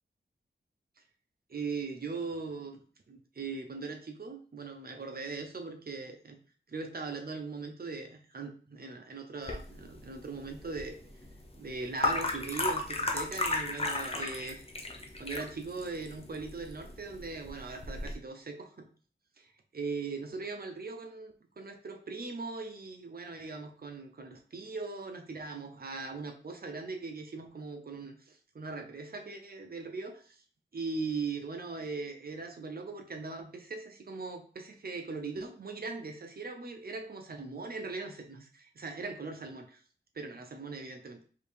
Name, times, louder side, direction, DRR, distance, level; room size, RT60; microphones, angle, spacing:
voice 1, 1.5-2.8 3.1-6.4 6.7-11.0 11.6-14.7 15.2-18.9 19.7-30.4 30.7-39.8 40.1-41.2, right 4 dB, 50° right, 4 dB, 0.7 m, -40 dB
sound 1, 9.4-18.1, left 2 dB, 30° left, 0.6 m, -35 dB
5.0 x 2.7 x 3.3 m, 0.42 s
wide cardioid pair, 100°, 20 cm